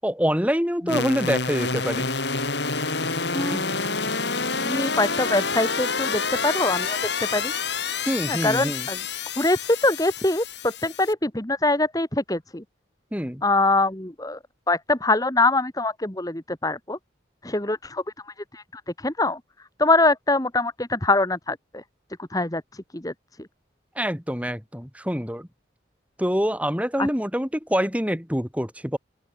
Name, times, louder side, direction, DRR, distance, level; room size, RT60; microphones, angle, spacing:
voice 1, 0.0-2.1 3.5-3.7 8.1-8.9 13.1-13.4 24.0-25.5 26.2-29.0, equal, 5° right, 8.0 m, -25 dB
sound 1, 0.9-11.1, left 4 dB, 65° left, 5.6 m, -28 dB
voice 2, 4.6-7.0 7.3-7.5 8.3-9.0 9.4-12.6 13.4-14.4 14.7-17.0 17.4-18.0 18.5-19.4 19.8-21.8 22.2-22.6 22.9-23.1 27.0-27.1, left 2 dB, 20° left, 1.7 m, -23 dB
open air
head